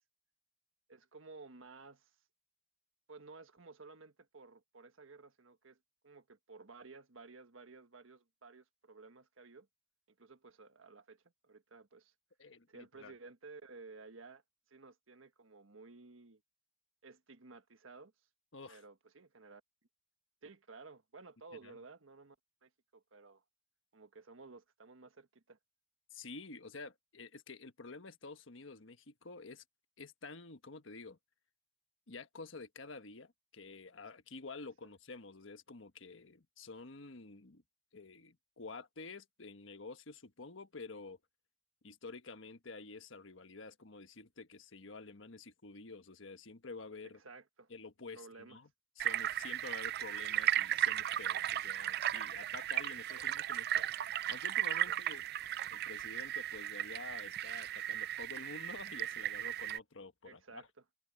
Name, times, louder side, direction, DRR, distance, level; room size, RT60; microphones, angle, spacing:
voice 1, 0.9-2.1 3.1-9.7 10.1-12.1 12.7-14.4 14.7-16.4 17.0-18.1 18.7-19.6 20.4-22.4 22.6-23.4 23.9-25.6 34.8-34.9 47.0-47.7 48.1-48.6 53.2-53.3 54.8-55.0 60.2-60.8, right 3 dB, 90° right, 1.4 m, -55 dB
voice 2, 12.4-13.1 18.5-18.8 21.6-21.7 26.1-29.6 30.0-31.2 32.1-37.6 37.9-41.2 41.8-47.2 47.7-48.7 49.0-53.9 54.3-55.2 55.7-60.6, left 3 dB, 70° left, 1.3 m, -50 dB
sound 1, 49.0-59.8, right 12 dB, 55° right, 0.4 m, -36 dB
head